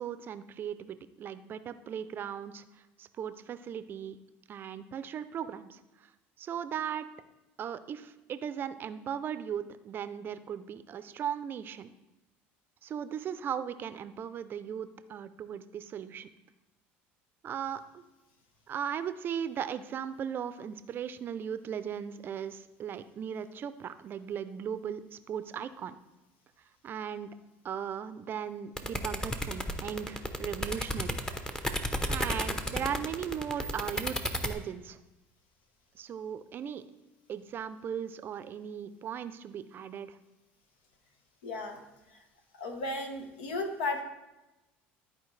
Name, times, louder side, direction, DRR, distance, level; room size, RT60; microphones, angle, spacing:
voice 1, 0.0-4.2 4.5-6.1 6.4-7.1 7.6-11.9 12.8-16.3 17.4-18.0 18.7-26.0 26.8-27.3 27.6-31.2 32.1-34.2 34.4-35.0 35.9-36.8 37.3-40.2, right 8 dB, 40° right, 13 dB, 0.5 m, -37 dB
sound 1, 28.8-34.5, equal, 10° left, 0.7 m, -32 dB
voice 2, 41.4-41.8 42.6-44.0, left 2 dB, 90° left, 5 dB, 1.2 m, -34 dB
13.0 x 4.3 x 3.2 m, 1.0 s
supercardioid pair, 105°, 5 cm